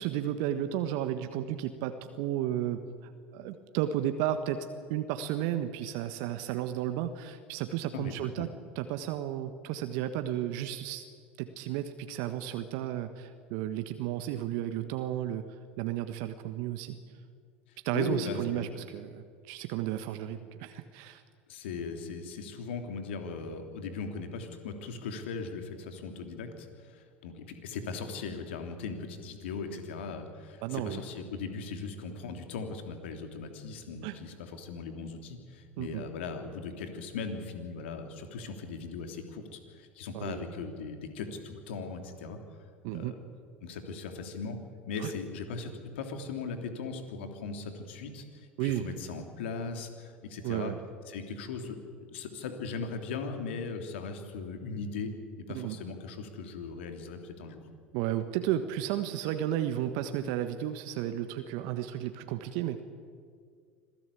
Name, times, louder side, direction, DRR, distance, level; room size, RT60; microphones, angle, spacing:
voice 1, 0.0-11.0 11.4-17.0 17.8-21.2 30.6-31.0 34.0-34.2 35.8-36.0 40.1-40.4 42.8-43.1 45.0-45.1 48.6-48.9 50.4-50.8 55.5-55.8 57.9-62.8, right 11 dB, 60° right, 9 dB, 1.4 m, -33 dB
voice 2, 7.9-8.5 17.9-18.7 21.5-42.4 42.9-43.2 43.6-44.6 44.9-50.7 51.1-51.8 52.1-55.1 55.4-57.6, left 4 dB, 70° left, 6 dB, 3.1 m, -39 dB
26.0 x 17.0 x 8.5 m, 2.1 s
hypercardioid pair, 75°, 6 cm